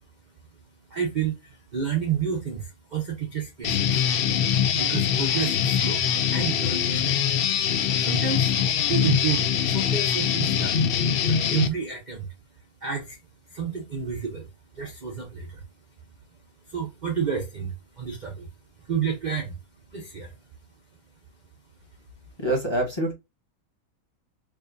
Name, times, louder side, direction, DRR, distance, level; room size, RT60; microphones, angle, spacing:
voice 1, 0.9-4.1 4.7-7.2 8.0-10.8 11.2-12.3 12.8-13.2 13.5-15.6 16.6-18.5 18.8-19.6 19.9-20.4, right 7 dB, 45° right, 0.6 m, -30 dB
Guitar, 3.6-11.7, left 8 dB, 70° left, 0.5 m, -23 dB
voice 2, 22.4-23.1, right 1 dB, 20° left, 1.1 m, -25 dB
4.8 x 2.5 x 2.5 m
omnidirectional pair, 1.5 m